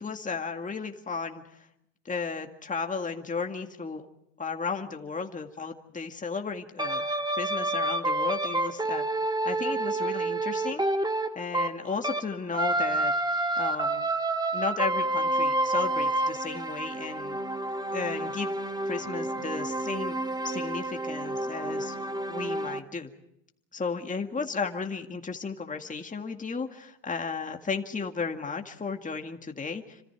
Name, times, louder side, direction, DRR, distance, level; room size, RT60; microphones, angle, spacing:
voice 1, 0.0-1.7 2.1-4.0 4.4-7.1 7.3-9.1 9.4-10.8 11.4-13.1 13.6-14.1 14.5-17.4 17.9-18.5 18.9-20.2 20.4-22.0 22.3-23.1 23.7-30.0, left 4 dB, 20° left, 4 dB, 2.1 m, -34 dB
sound 1, 6.8-12.3 12.5-22.8, right 2 dB, 10° right, 1.8 m, -29 dB
28.5 x 25.5 x 4.8 m, 0.79 s
supercardioid pair, 80°, 39 cm